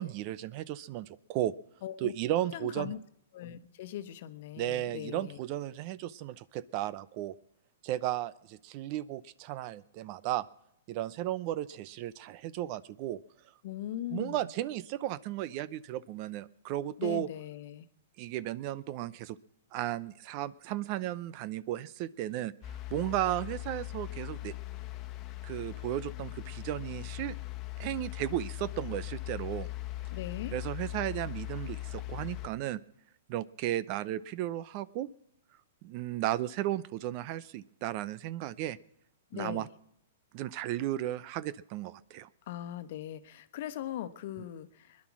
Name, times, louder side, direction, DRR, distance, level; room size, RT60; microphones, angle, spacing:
voice 1, 0.0-1.5 2.0-2.9 4.6-7.3 7.8-10.5 10.9-13.2 14.1-17.3 18.2-19.4 19.7-22.5 22.9-24.5 25.4-27.3 27.8-29.7 30.5-32.8 33.3-35.1 35.8-38.8 39.3-39.7 40.3-42.3, right 13 dB, 40° right, 19 dB, 0.6 m, -34 dB
voice 2, 1.8-2.1 2.5-3.0 3.3-5.4 13.6-14.5 17.0-17.9 30.1-30.5 39.3-39.7 42.5-45.1, left 12 dB, 55° left, 11 dB, 1.2 m, -40 dB
sound 1, 22.6-32.5, left 16 dB, 30° left, 1.3 m, -40 dB
21.0 x 11.0 x 6.0 m, 0.77 s
hypercardioid pair, 135°, 0 cm